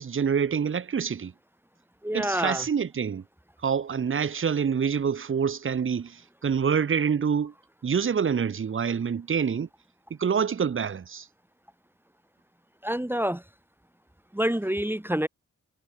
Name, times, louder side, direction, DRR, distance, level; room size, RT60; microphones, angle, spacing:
voice 1, 0.0-1.3 2.1-3.2 3.6-7.5 7.8-9.7 10.1-11.3, right 6 dB, 45° right, 1.0 m, -26 dB
voice 2, 2.0-2.6 12.8-13.4 14.3-15.3, equal, 5° right, 1.7 m, -27 dB
cardioid pair, 65°, 30 cm